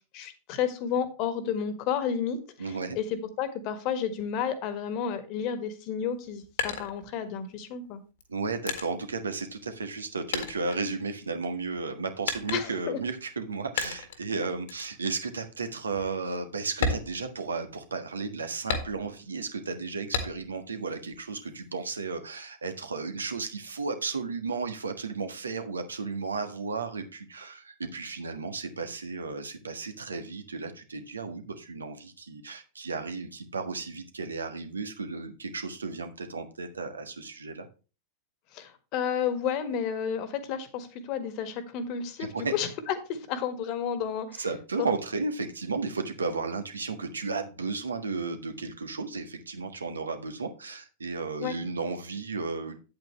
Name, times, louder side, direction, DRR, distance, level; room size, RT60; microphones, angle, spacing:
voice 1, 0.1-8.0 12.5-13.0 38.5-44.4 44.8-44.9 51.4-51.6, left 8 dB, 40° left, 11 dB, 1.7 m, -31 dB
voice 2, 2.6-3.0 8.3-37.7 42.2-42.5 44.4-52.8, right 4 dB, 75° right, 7 dB, 1.4 m, -34 dB
sound 1, 6.0-7.6 8.2-10.0 10.3-11.5 12.3-12.9 13.8-14.3 14.7-14.9 15.4-15.5 15.9-16.1 16.7-17.9 18.7-19.3 20.1-20.7 21.1-21.9, left 5 dB, 60° left, 1.8 m, -34 dB
9.0 x 8.5 x 3.1 m, 0.32 s
figure-of-eight pair, 90°, 0 cm